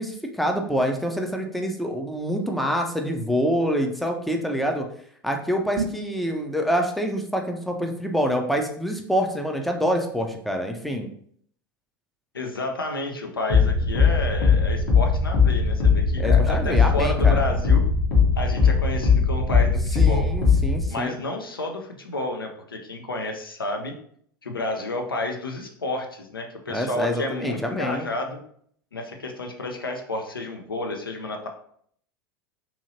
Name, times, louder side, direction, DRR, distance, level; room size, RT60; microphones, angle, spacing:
voice 1, 0.0-4.9 5.2-11.1 16.2-17.6 19.9-21.1 26.7-28.1, equal, ahead, 3 dB, 0.4 m, -26 dB
sound 1, 5.7-6.2, right 3 dB, 65° right, 0.6 m, -30 dB
voice 2, 12.3-17.8 18.4-20.2 20.9-23.9 24.4-28.4 28.9-31.5, left 2 dB, 85° left, 4 dB, 0.5 m, -30 dB
sound 2, 13.5-20.9, left 5 dB, 50° left, 0.9 m, -20 dB
2.7 x 2.7 x 2.6 m, 0.63 s
figure-of-eight pair, 80°, 12 cm